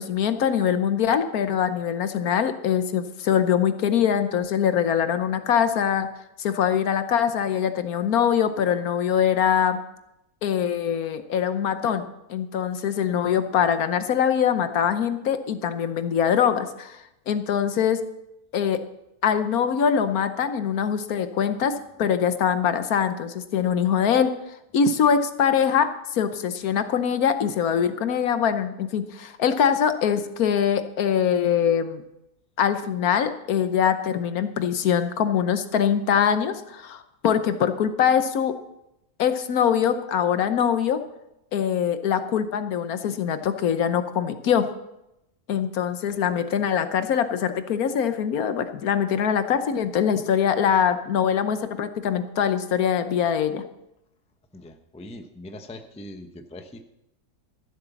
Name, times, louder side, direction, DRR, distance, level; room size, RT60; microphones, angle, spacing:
voice 1, 0.0-6.1 6.4-9.8 10.4-18.0 18.5-18.8 19.2-21.7 22.0-24.3 24.7-32.0 32.6-38.5 39.2-41.0 41.5-44.6 45.5-53.6, left 8 dB, 70° left, 10 dB, 1.3 m, -23 dB
voice 2, 54.5-56.8, left 1 dB, 5° left, 6 dB, 0.6 m, -41 dB
13.5 x 7.9 x 7.1 m, 0.87 s
omnidirectional pair, 1.7 m